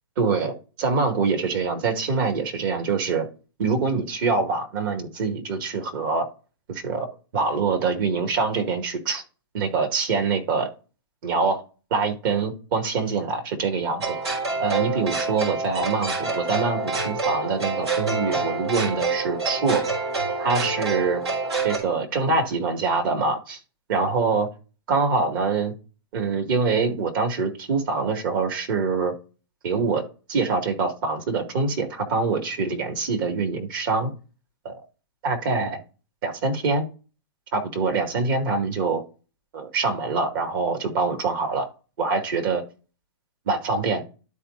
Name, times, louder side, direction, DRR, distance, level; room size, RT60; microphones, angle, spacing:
voice 1, 0.2-3.3 3.6-6.3 6.7-7.1 7.3-9.2 9.5-10.7 11.2-11.6 11.9-14.2 14.6-19.8 20.4-21.2 21.6-23.6 23.9-24.5 24.9-25.7 26.1-29.1 29.6-30.0 30.3-34.1 34.6-34.7 35.2-35.8 36.2-36.8 37.5-39.0 39.5-41.7 42.0-42.6 43.5-44.0, right 4 dB, 55° right, 2.1 m, -24 dB
sound 1, 14.0-21.8, right 3 dB, 90° right, 4.2 m, -27 dB
12.5 x 4.3 x 2.6 m
hypercardioid pair, 115°, 14 cm